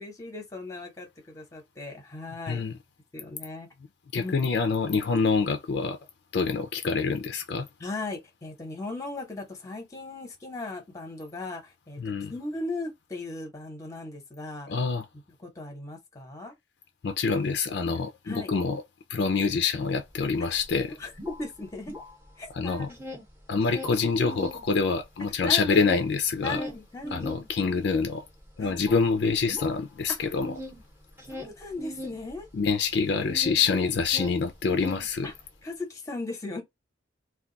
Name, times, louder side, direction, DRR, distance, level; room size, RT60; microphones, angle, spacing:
voice 1, 0.0-2.6 3.1-3.7 4.2-4.4 7.8-12.0 12.3-14.7 15.4-16.5 18.2-18.5 20.5-20.6 21.0-21.9 22.4-23.0 25.4-26.1 26.4-27.3 28.6-28.7 30.2-30.3 31.3-32.5 35.2-35.3 35.6-36.6, left 2 dB, 15° left, 0.8 m, -37 dB
voice 2, 4.1-6.0 6.3-7.7 12.0-12.3 14.7-15.1 17.0-18.8 19.1-21.0 22.5-22.9 23.5-26.6 27.1-28.2 28.6-30.5 32.5-35.3, left 5 dB, 60° left, 0.4 m, -26 dB
sound 1, 20.1-20.2 20.5-22.5 22.8-24.6 25.0-33.7 33.9-35.5, left 1 dB, 10° right, 0.8 m, -41 dB
2.3 x 2.3 x 3.7 m
head